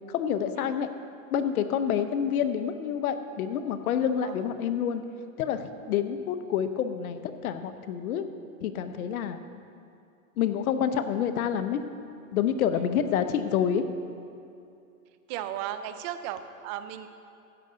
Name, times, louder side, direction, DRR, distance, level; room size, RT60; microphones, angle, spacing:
voice 1, 0.1-0.9 1.3-5.0 5.4-8.2 8.6-9.4 10.4-11.8 12.3-13.9, left 8 dB, 80° left, 10 dB, 0.9 m, -28 dB
voice 2, 15.3-17.1, right 11 dB, 30° right, 11 dB, 0.5 m, -35 dB
13.5 x 9.2 x 3.8 m, 2.6 s
supercardioid pair, 145°, 43 cm